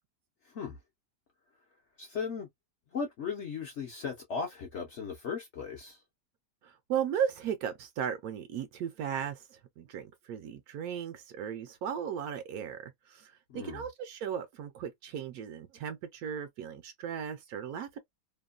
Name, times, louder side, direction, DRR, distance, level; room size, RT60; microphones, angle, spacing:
voice 1, 0.5-0.8 2.0-2.5 2.9-6.0 13.5-13.8, left 5 dB, 55° left, 0.8 m, -37 dB
voice 2, 6.6-18.0, right 8 dB, 70° right, 1.0 m, -36 dB
2.9 x 2.2 x 2.2 m
omnidirectional pair, 1.8 m